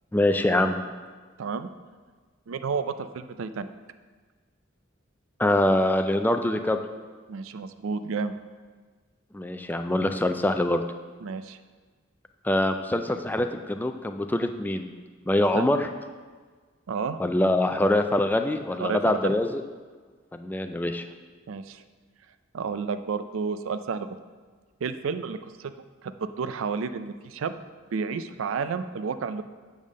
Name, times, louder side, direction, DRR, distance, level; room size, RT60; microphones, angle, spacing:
voice 1, 0.1-0.8 5.4-6.8 9.3-10.8 12.4-14.9 15.3-15.9 17.2-19.6 20.3-21.0, left 1 dB, 10° left, 7 dB, 0.3 m, -24 dB
voice 2, 1.4-1.7 2.5-3.7 7.3-8.4 11.2-11.6 15.5-15.6 16.9-17.2 18.8-19.3 21.5-21.8 22.5-24.2 24.8-25.7 26.0-27.6 27.9-29.4, right 5 dB, 75° right, 11 dB, 0.4 m, -31 dB
8.4 x 3.5 x 6.3 m, 1.5 s
head